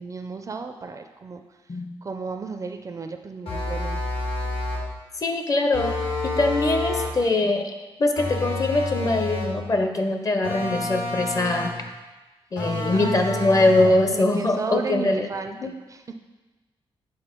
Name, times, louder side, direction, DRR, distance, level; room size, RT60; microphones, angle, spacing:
voice 1, 0.0-1.4 2.0-4.0 12.8-13.5 14.0-16.1, right 4 dB, 35° right, 6 dB, 0.4 m, -34 dB
sound 1, 3.5-4.9 5.7-7.2 8.2-9.6 10.4-11.9 12.6-14.0, left 2 dB, 75° left, 1.6 m, -29 dB
voice 2, 5.2-6.0 6.2-7.7 8.0-11.7 12.5-15.3 15.6-15.7, left 2 dB, 35° left, 5 dB, 0.7 m, -22 dB
8.8 x 3.8 x 4.4 m, 1.2 s
wide cardioid pair, 140°, 10 cm